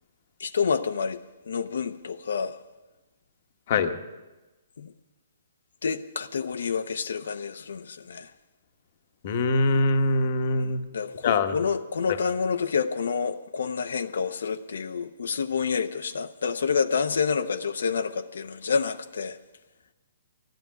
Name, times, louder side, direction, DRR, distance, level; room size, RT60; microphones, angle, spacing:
voice 1, 0.4-2.6 4.8-4.9 5.8-8.3 10.6-19.4, left 5 dB, 75° left, 0.8 m, -28 dB
voice 2, 9.2-10.8 11.2-11.6, left 3 dB, 35° left, 1.0 m, -23 dB
12.0 x 12.0 x 9.1 m
hypercardioid pair, 170°, 0 cm